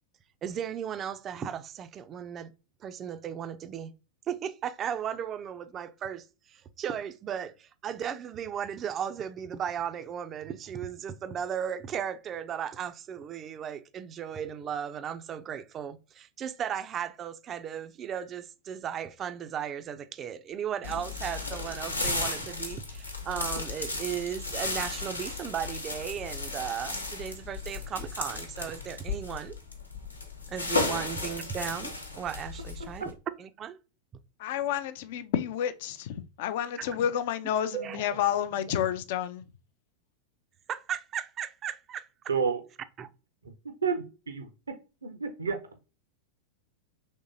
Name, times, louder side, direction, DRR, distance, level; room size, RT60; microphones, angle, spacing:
voice 1, 0.4-2.5 2.8-3.9 4.3-29.6 30.5-33.1 33.4-33.8 36.8-37.1 37.7-38.2 38.7-38.9 40.7-42.1 43.0-43.1, right 8 dB, 30° right, 0.4 m, -36 dB
sound 1, 20.8-33.1, left 3 dB, 80° left, 0.7 m, -34 dB
voice 2, 34.4-36.1 36.4-39.4, left 10 dB, 50° left, 0.4 m, -30 dB
voice 3, 42.3-42.6 43.8-44.5 45.0-45.6, right 6 dB, 75° right, 0.6 m, -29 dB
3.6 x 3.2 x 2.7 m
figure-of-eight pair, 90°, 0 cm